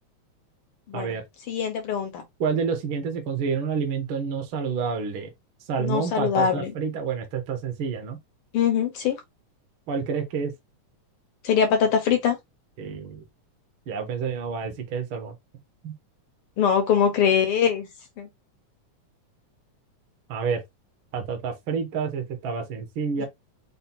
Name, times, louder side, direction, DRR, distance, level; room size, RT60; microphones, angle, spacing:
voice 1, 1.5-2.2 5.8-6.7 8.5-9.2 11.4-12.4 16.6-17.9 18.2-18.3 23.2-23.3, left 7 dB, 70° left, 1.3 m, -22 dB
voice 2, 2.4-5.3 5.7-8.2 9.9-10.5 12.8-13.2 13.9-15.3 15.8-15.9 20.3-20.6 21.1-23.2, right 6 dB, 60° right, 1.3 m, -28 dB
5.5 x 2.2 x 4.3 m
omnidirectional pair, 3.5 m